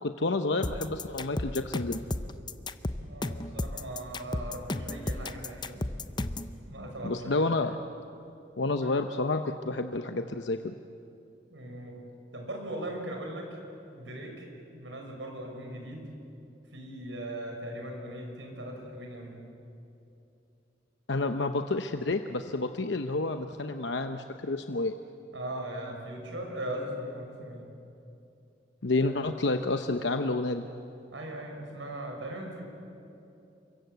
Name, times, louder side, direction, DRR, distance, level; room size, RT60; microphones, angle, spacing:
voice 1, 0.0-2.0 7.0-7.8 8.6-10.7 21.1-24.9 28.8-30.6, left 2 dB, 70° left, 7 dB, 0.8 m, -29 dB
sound 1, 0.6-6.5, left 2 dB, 25° left, 0.7 m, -33 dB
voice 2, 2.9-5.8 6.7-7.3 11.5-12.0 12.3-13.6 13.9-14.5 14.7-16.1 16.7-19.4 25.3-27.7 29.0-29.1 31.1-32.6, right 1 dB, 85° right, 2 dB, 5.9 m, -39 dB
28.5 x 24.0 x 8.0 m, 2.8 s
head